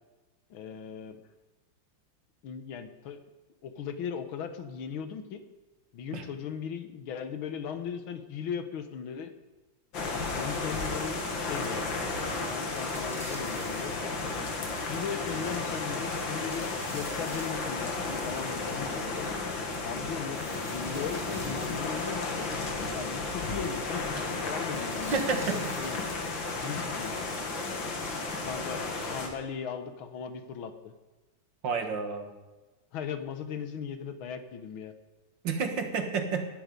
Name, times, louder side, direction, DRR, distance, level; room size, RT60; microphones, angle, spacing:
voice 1, 0.5-1.2 2.4-3.2 3.6-5.4 5.9-9.3 10.0-14.1 14.8-19.3 19.8-22.5 22.9-24.2 24.4-26.0 26.5-27.4 28.3-30.9 32.9-34.9, left 7 dB, 90° left, 8 dB, 1.9 m, -38 dB
sound 1, 9.9-29.3, left 3 dB, 70° left, 2.6 m, -33 dB
sound 2, 11.0-11.5 11.8-11.9 12.3-12.4 12.8-14.1 14.8-16.1 16.5-17.6 18.1-19.4 20.3-22.1 22.8-23.8 24.7-26.4 26.9-27.9 28.4-28.5, equal, ahead, 4.6 m, -51 dB
voice 2, 25.1-25.6 31.6-32.3 35.4-36.5, right 5 dB, 65° right, 5 dB, 2.2 m, -30 dB
18.5 x 11.0 x 5.3 m, 1.2 s
omnidirectional pair, 2.2 m